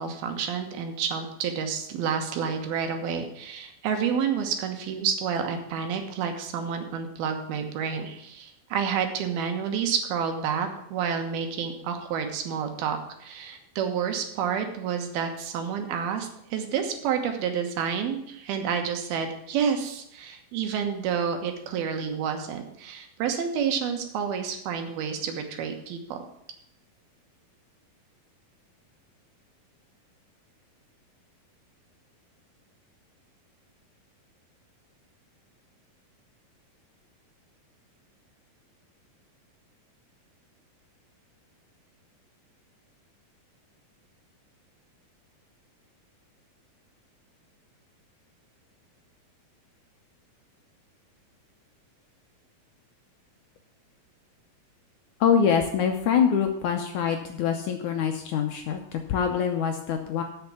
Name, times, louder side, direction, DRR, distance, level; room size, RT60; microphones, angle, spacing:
voice 1, 0.0-26.2, right 7 dB, 85° right, 5 dB, 3.2 m, -29 dB
voice 2, 55.2-60.2, left 7 dB, 75° left, 5 dB, 1.9 m, -24 dB
8.0 x 6.7 x 8.3 m, 0.74 s
omnidirectional pair, 4.3 m